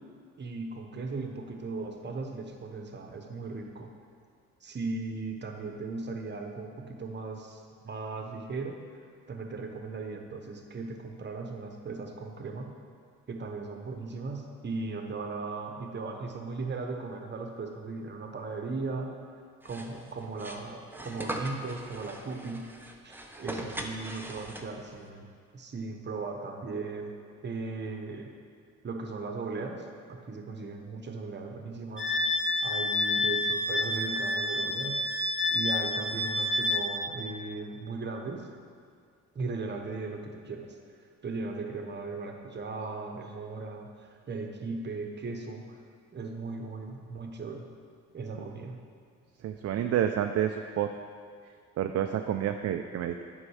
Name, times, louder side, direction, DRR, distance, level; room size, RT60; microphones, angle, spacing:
voice 1, 0.4-3.9 4.6-8.8 9.3-12.8 13.3-19.2 19.6-22.7 23.0-25.3 25.5-27.1 27.4-28.3 28.8-32.1 32.6-35.1 35.5-38.5 39.3-40.7 41.2-45.7 46.1-47.7 48.1-48.8, right 3 dB, 35° right, 3 dB, 1.0 m, -37 dB
sound 1, 19.6-25.0, right 1 dB, 5° right, 0.7 m, -40 dB
Wind instrument woodwind instrument, 32.0-36.9, left 2 dB, 35° left, 1.7 m, -28 dB
voice 2, 49.4-50.9 51.8-53.2, right 10 dB, 55° right, 6 dB, 0.5 m, -29 dB
8.4 x 5.4 x 4.8 m, 2.1 s
cardioid pair, 90°, 30 cm